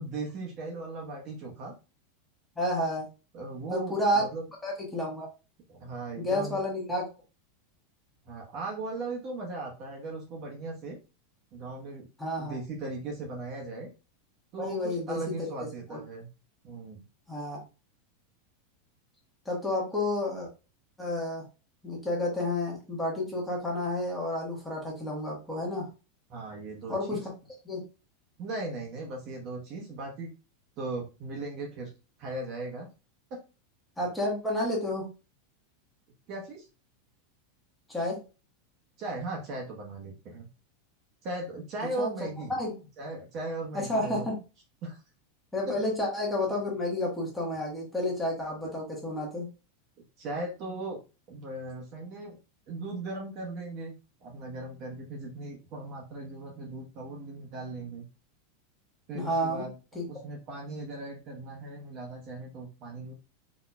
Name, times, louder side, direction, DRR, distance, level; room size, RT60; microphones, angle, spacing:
voice 1, 0.0-1.7 3.3-4.5 5.7-6.6 8.2-11.0 11.5-12.1 12.4-13.9 14.5-16.3 16.6-17.0 26.3-27.2 28.4-30.3 30.8-31.9 32.2-32.9 33.3-33.4 36.3-36.7 39.0-40.5 41.2-42.6 43.0-44.3 44.8-45.0 45.7-45.8 50.2-51.0 51.3-52.4 52.7-53.9 54.2-58.0 59.1-59.7 60.1-63.1, right 2 dB, 35° right, 0 dB, 1.0 m, -38 dB
voice 2, 2.6-3.1 3.7-4.2 4.6-5.3 6.2-7.1 12.2-12.6 14.6-15.5 15.9-16.0 17.3-17.6 19.4-20.5 21.0-21.4 21.8-25.9 26.9-27.2 27.7-27.8 34.0-35.1 37.9-38.2 42.0-42.1 42.5-42.7 43.7-44.4 45.5-49.5 59.1-59.7 59.9-60.0, left 1 dB, 5° left, -4 dB, 1.2 m, -30 dB
4.1 x 2.8 x 2.2 m, 0.30 s
supercardioid pair, 165°, 0 cm